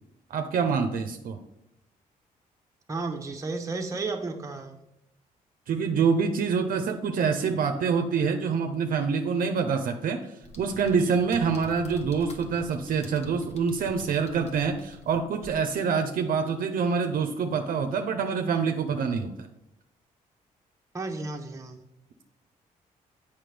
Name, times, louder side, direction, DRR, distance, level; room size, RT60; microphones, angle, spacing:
voice 1, 0.3-1.4 5.7-19.3, right 5 dB, 70° right, 6 dB, 0.6 m, -26 dB
voice 2, 2.9-4.8 20.9-21.8, right 3 dB, 20° right, 2 dB, 0.8 m, -33 dB
sound 1, 10.4-15.6, left 1 dB, 45° left, 1.1 m, -46 dB
7.6 x 5.7 x 3.3 m, 0.83 s
cardioid pair, 85°, 15 cm